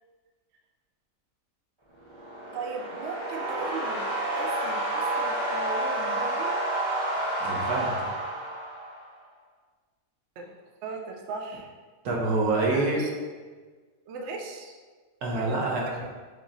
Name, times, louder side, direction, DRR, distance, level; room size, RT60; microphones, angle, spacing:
sound 1, 2.0-9.1, right 1 dB, 30° right, 0.6 m, -30 dB
voice 1, 2.5-4.1 4.4-6.5 10.4-10.5 10.8-11.7 12.6-13.2 14.1-14.7 15.3-16.1, right 4 dB, 65° right, 1 dB, 0.7 m, -37 dB
voice 2, 7.4-8.1 12.0-13.0 15.2-16.0, right 2 dB, 80° right, -3 dB, 1.4 m, -27 dB
5.8 x 3.0 x 2.7 m, 1.4 s
omnidirectional pair, 1.6 m